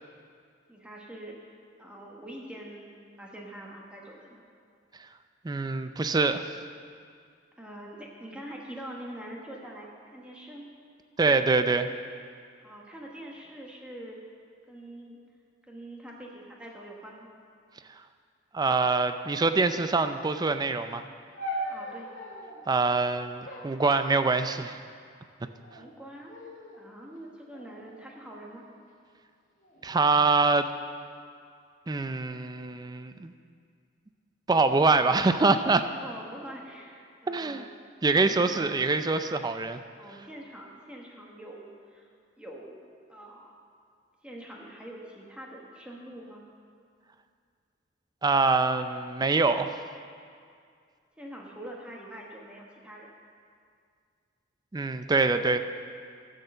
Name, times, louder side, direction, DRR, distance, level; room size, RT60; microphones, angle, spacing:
voice 1, 0.7-1.4 1.8-4.4 7.6-10.6 12.6-14.2 14.7-15.2 15.7-17.3 21.7-22.1 25.8-26.4 26.8-28.6 36.0-37.7 38.1-38.9 40.0-42.1 42.4-43.5 44.2-46.4 51.2-53.1, right 1 dB, 5° right, -2 dB, 1.2 m, -44 dB
voice 2, 5.4-6.5 11.2-11.9 18.5-21.0 22.7-24.8 29.8-30.7 31.9-33.3 34.5-35.9 37.3-37.7 38.0-39.8 48.2-49.7 54.7-55.6, right 3 dB, 20° right, 9 dB, 0.4 m, -24 dB
sound 1, 21.4-22.6 23.4-24.6 25.4-25.9 26.3-26.8 27.5-28.8 29.6-30.0, equal, 45° left, 1.8 m, -40 dB
12.0 x 6.5 x 6.8 m, 2.2 s
head